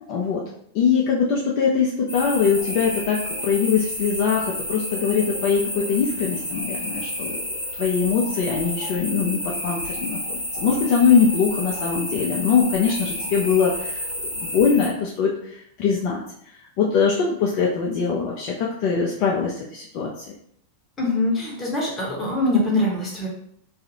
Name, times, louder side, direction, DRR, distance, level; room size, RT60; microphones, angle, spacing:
voice 1, 0.1-0.4 0.7-7.4 7.8-14.1 14.4-16.2 16.8-20.2, left 6 dB, 45° left, -2 dB, 0.4 m, -22 dB
sound 1, 2.1-14.9, equal, 85° left, 0.9 m, -30 dB
voice 2, 21.0-23.3, left 2 dB, 20° left, -3 dB, 0.9 m, -23 dB
2.5 x 2.3 x 2.8 m, 0.67 s
figure-of-eight pair, 90°, 0 cm